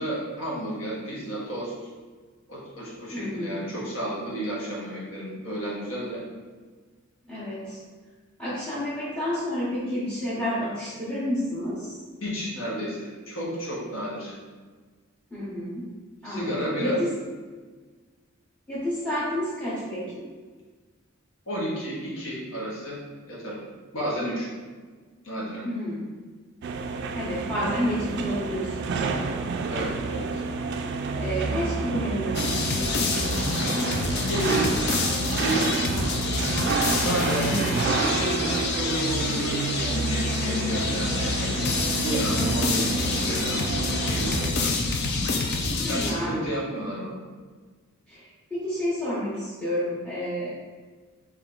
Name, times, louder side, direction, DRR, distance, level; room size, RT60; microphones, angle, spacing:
voice 1, 0.0-1.7 2.5-6.2 12.2-14.3 16.2-17.0 21.5-23.0 23.3-23.6 23.9-24.5 25.2-25.6 29.7-30.4 34.3-34.7 35.4-36.1 37.0-43.6 44.0-44.7 45.9-47.2, equal, 70° left, -6 dB, 1.4 m, -31 dB
voice 2, 3.1-3.6 7.3-7.8 8.4-12.0 15.3-15.8 16.2-17.1 18.7-20.2 25.6-26.1 27.1-29.4 31.2-33.1 37.4-38.0 45.8-46.4 48.1-50.5, equal, 5° left, -11 dB, 0.9 m, -30 dB
sound 1, 26.6-44.5, right 4 dB, 55° right, 0.3 m, -29 dB
sound 2, 32.3-46.1, left 3 dB, 50° left, 0.5 m, -27 dB
3.4 x 3.2 x 3.8 m, 1.4 s
head